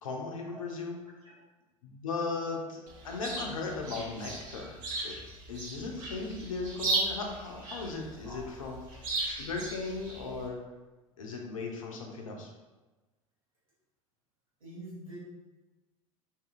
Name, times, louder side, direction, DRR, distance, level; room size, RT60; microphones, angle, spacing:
voice 1, 0.0-1.0 1.8-2.8 3.0-4.8 5.0-5.2 5.5-10.6 11.2-12.5, left 4 dB, 70° left, 1 dB, 0.4 m, -37 dB
voice 2, 0.5-0.9 1.2-1.4 2.6-2.7 8.2-8.6 14.6-15.2, right 1 dB, 75° right, -9 dB, 1.0 m, -47 dB
Chirp tweet, 2.9-10.5, right 2 dB, 45° right, 0.7 m, -37 dB
2.6 x 2.4 x 2.4 m, 1.2 s
figure-of-eight pair, 75°, 18 cm